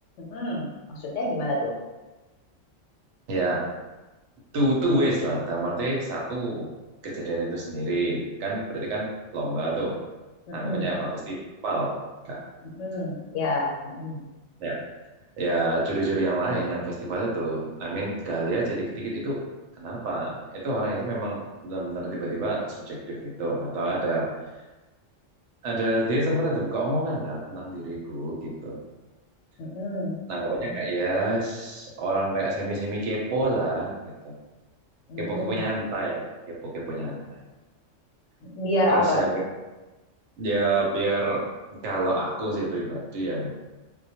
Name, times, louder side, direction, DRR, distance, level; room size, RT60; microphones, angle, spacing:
voice 1, 0.2-1.7 10.5-10.9 12.6-14.2 29.6-30.2 35.1-35.6 38.4-39.2, left 1 dB, 75° left, -2 dB, 0.9 m, -28 dB
voice 2, 3.3-3.6 4.5-6.7 7.0-9.1 9.3-9.9 10.5-12.0 12.2-12.4 14.6-14.7 15.4-19.4 19.8-24.3 25.6-28.8 30.3-33.9 34.2-34.3 35.2-37.4 38.9-39.4 40.4-41.4 41.8-43.5, right 2 dB, 70° right, -3 dB, 0.9 m, -28 dB
2.2 x 2.1 x 2.7 m, 1.2 s
omnidirectional pair, 1.3 m